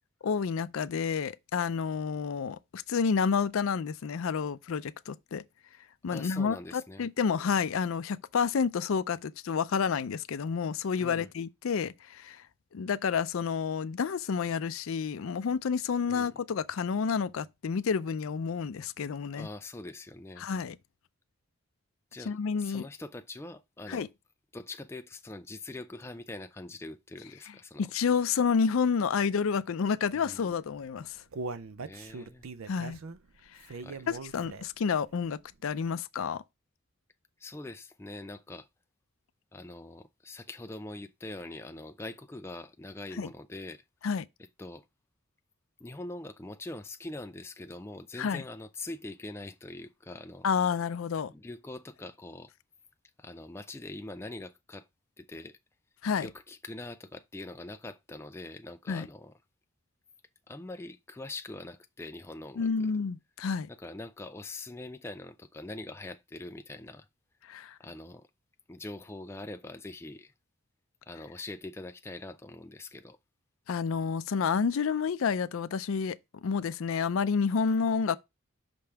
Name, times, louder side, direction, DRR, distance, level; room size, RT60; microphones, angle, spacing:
voice 1, 0.2-5.4 6.0-12.4 12.7-19.5 20.4-20.8 22.3-22.8 23.9-24.1 27.8-31.2 32.7-33.0 34.1-36.4 43.2-43.3 44.0-44.3 48.2-48.4 50.4-51.3 56.0-56.3 58.9-59.1 62.6-63.7 67.5-67.8 73.7-78.2, left 6 dB, 75° left, 0.4 m, -29 dB
voice 2, 6.1-7.1 11.0-11.3 16.1-16.3 19.4-20.5 22.1-24.1 24.5-27.9 30.1-30.5 31.8-32.4 33.8-34.0 37.4-38.7 39.5-43.8 44.6-44.8 45.8-50.5 51.3-52.5 53.2-54.9 55.2-55.6 56.2-59.3 60.5-62.9 63.8-67.1 67.8-68.3 68.7-70.3 71.1-73.2, left 2 dB, 10° left, 0.3 m, -43 dB
Human voice, 30.7-34.9 35.3-35.4 35.9-36.0, right 3 dB, 85° right, 0.6 m, -41 dB
5.7 x 5.3 x 3.4 m
head